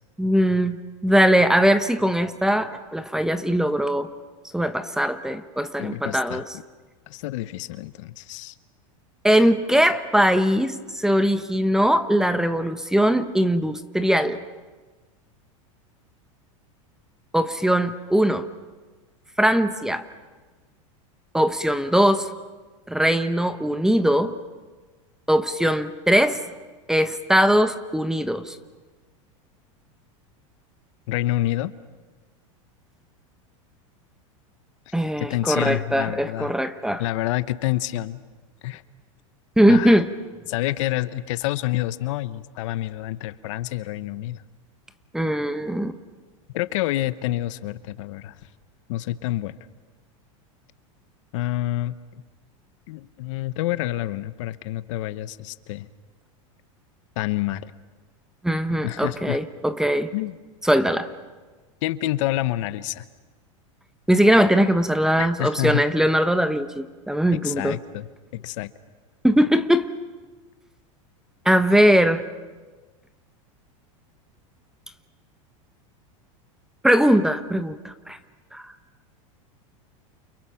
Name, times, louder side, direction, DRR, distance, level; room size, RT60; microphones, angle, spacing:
voice 1, 0.2-0.8 1.0-4.1 4.5-6.5 9.2-14.4 17.3-18.5 19.4-20.1 21.3-22.3 22.9-24.4 25.3-26.4 26.9-28.6 34.9-37.0 39.6-40.1 45.1-46.0 58.4-60.1 60.6-61.1 64.1-67.8 69.2-69.9 71.4-72.2 76.8-78.2 78.5-78.7, equal, 5° right, 11 dB, 1.2 m, -20 dB
voice 2, 5.8-6.4 7.1-8.5 31.1-31.7 34.9-36.5 37.0-38.2 38.6-38.8 39.7-40.0 40.5-44.4 46.5-48.4 48.9-49.5 51.3-52.0 52.9-55.9 57.2-57.7 58.8-59.4 60.1-60.4 61.8-63.0 65.2-65.8 67.4-68.7, left 16 dB, 65° left, 14 dB, 1.0 m, -28 dB
29.5 x 29.0 x 5.8 m, 1.3 s
supercardioid pair, 125°, 17 cm